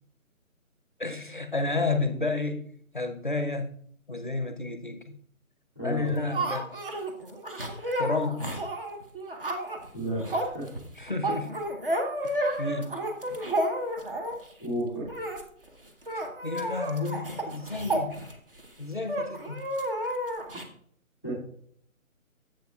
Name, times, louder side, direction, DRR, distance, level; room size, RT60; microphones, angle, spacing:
voice 1, 1.0-2.6 2.9-3.7 4.1-5.1 5.8-6.7 8.0-8.5 11.0-11.6 12.2-13.0 16.1-18.2 18.8-19.7, left 3 dB, 35° left, 7 dB, 0.5 m, -31 dB
voice 2, 5.8-6.1 9.9-10.7 14.6-15.1 21.2-21.3, right 1 dB, 10° right, -8 dB, 2.1 m, -32 dB
sound 1, 6.0-14.5 15.1-15.4 15.7-15.8 16.0-18.7 19.1-20.6, right 1 dB, 40° right, 1.0 m, -31 dB
10.5 x 7.7 x 2.3 m, 0.63 s
hypercardioid pair, 180°, 42 cm